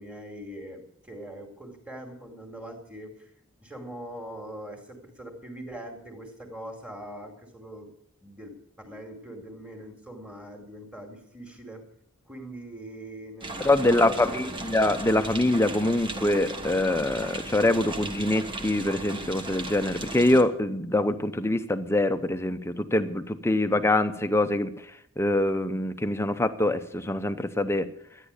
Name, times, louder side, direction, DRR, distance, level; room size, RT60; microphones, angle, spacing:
voice 1, 0.0-3.3 3.6-7.9 8.2-11.8 12.3-14.5, right 1 dB, 5° right, 2 dB, 2.4 m, -42 dB
sound 1, 13.4-20.4, right 2 dB, 25° right, 1.4 m, -37 dB
voice 2, 13.6-24.7 25.2-27.9, left 1 dB, 10° left, 10 dB, 0.8 m, -24 dB
13.0 x 9.9 x 8.3 m, 0.72 s
head